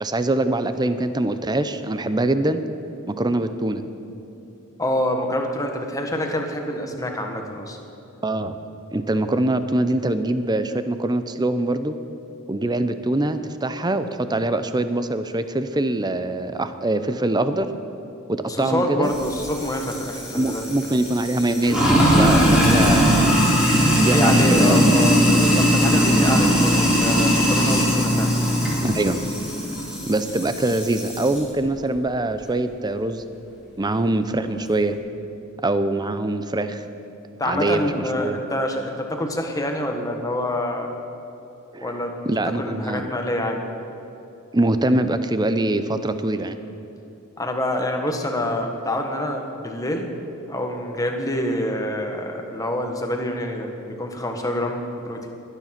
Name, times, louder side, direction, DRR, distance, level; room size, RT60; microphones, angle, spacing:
voice 1, 0.0-2.6 3.1-3.8 8.2-8.6 8.9-12.0 12.5-17.7 18.3-19.1 20.3-23.4 23.9-24.9 28.8-29.2 30.0-33.2 33.8-35.0 35.6-36.8 37.4-38.4 41.7-43.1 44.5-46.6, right 2 dB, 20° right, 10 dB, 0.6 m, -23 dB
voice 2, 4.8-7.8 18.5-20.7 24.1-28.3 37.4-40.9 41.8-42.1 42.6-43.7 47.4-50.1 50.5-55.3, left 1 dB, 15° left, 3 dB, 1.4 m, -26 dB
Sink (filling or washing), 19.1-31.4, equal, 5° right, 4.3 m, -19 dB
22.0 x 10.0 x 5.9 m, 2.9 s
head